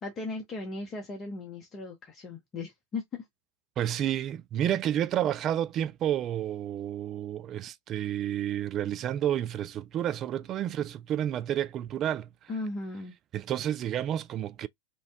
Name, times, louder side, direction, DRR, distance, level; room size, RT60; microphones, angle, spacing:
voice 1, 0.0-3.3 12.5-13.1, left 3 dB, 25° left, 0.8 m, -37 dB
voice 2, 3.8-12.5 13.3-14.7, right 11 dB, 30° right, 0.3 m, -30 dB
3.0 x 2.7 x 3.3 m
figure-of-eight pair, 90°, 0 cm